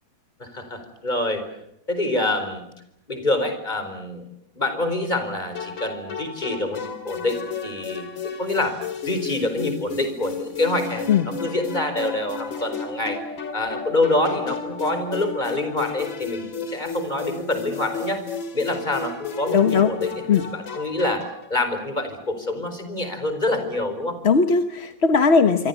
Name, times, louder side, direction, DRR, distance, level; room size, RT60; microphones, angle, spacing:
voice 1, 0.4-1.4 1.9-2.7 3.1-4.3 4.5-8.1 8.4-13.2 13.5-18.2 18.5-24.2, left 2 dB, 20° left, 8 dB, 4.8 m, -26 dB
sound 1, 5.6-21.5, left 5 dB, 65° left, 3.4 m, -33 dB
voice 2, 19.5-19.9 20.3-20.4 24.2-25.7, left 5 dB, 40° left, 9 dB, 1.0 m, -18 dB
27.0 x 25.0 x 7.1 m, 0.80 s
omnidirectional pair, 2.3 m